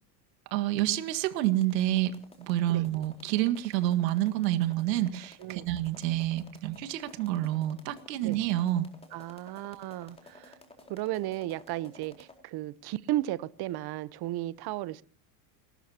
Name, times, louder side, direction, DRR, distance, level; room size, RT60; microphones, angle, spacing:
voice 1, 0.5-2.1 2.4-8.9, right 14 dB, 80° right, 1.9 m, -28 dB
sound 1, 1.1-12.4, left 2 dB, 10° left, 4.2 m, -54 dB
voice 2, 5.4-5.7 8.2-8.4 9.1-10.6 10.9-15.0, right 15 dB, 50° right, 1.0 m, -34 dB
30.0 x 13.0 x 2.9 m
supercardioid pair, 95°, 49 cm